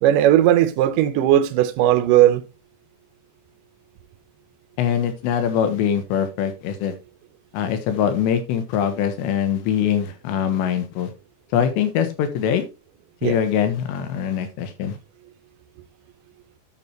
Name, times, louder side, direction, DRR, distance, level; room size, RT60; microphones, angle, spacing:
voice 1, 0.0-2.4 13.2-13.4, right 12 dB, 85° right, 1.9 m, -17 dB
voice 2, 4.8-6.9 7.5-11.1 11.5-12.7 13.2-15.0, left 8 dB, 85° left, 3.6 m, -23 dB
11.0 x 7.1 x 3.0 m
omnidirectional pair, 4.9 m